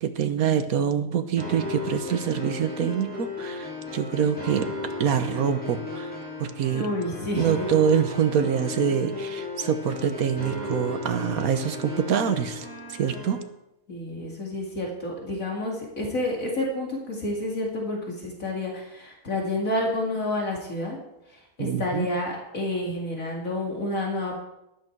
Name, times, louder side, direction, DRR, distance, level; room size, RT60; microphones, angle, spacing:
voice 1, 0.0-4.7 5.0-6.1 6.4-6.9 7.4-13.4 21.6-22.1, right 8 dB, 70° right, 9 dB, 1.4 m, -25 dB
sound 1, 1.4-13.4, left 3 dB, 5° left, 3.3 m, -35 dB
voice 2, 6.7-7.7 13.9-21.0 21.3-24.4, left 1 dB, 65° left, -1 dB, 2.7 m, -29 dB
13.5 x 11.0 x 4.6 m, 0.88 s
omnidirectional pair, 1.6 m